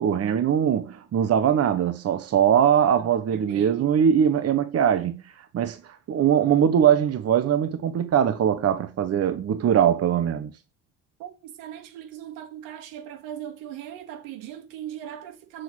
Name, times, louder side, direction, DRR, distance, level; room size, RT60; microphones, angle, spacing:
voice 1, 0.0-5.2 5.5-10.5, right 9 dB, 50° right, 1.1 m, -21 dB
voice 2, 3.0-3.9 11.2-15.6, right 11 dB, 80° right, 2.0 m, -39 dB
7.6 x 6.4 x 6.3 m
hypercardioid pair, 65°, 33 cm